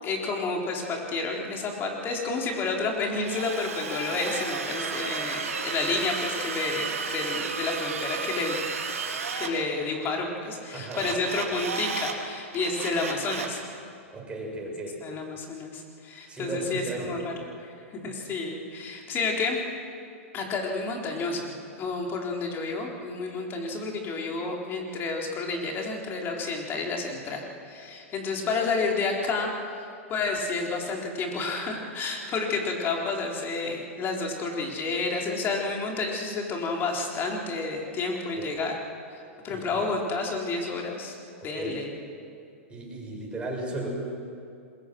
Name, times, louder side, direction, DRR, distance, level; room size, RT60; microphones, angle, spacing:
voice 1, 0.0-8.6 9.4-13.6 15.0-17.3 17.6-17.7 18.0-19.6 20.3-27.4 27.7-29.5 29.8-29.9 30.1-38.8 39.1-41.1 41.4-41.9, left 3 dB, 30° left, 0 dB, 4.2 m, -30 dB
Drill, 3.2-9.5 10.9-12.2 12.5-13.6, right 5 dB, 90° right, 2.7 m, -33 dB
voice 2, 10.7-11.2 14.1-15.0 16.3-17.2 18.0-18.1 38.4-38.6 39.4-39.8 41.4-41.8 42.7-43.9, right 2 dB, 15° right, -2 dB, 6.9 m, -35 dB
26.5 x 22.0 x 6.4 m, 2.5 s
hypercardioid pair, 125°, 7 cm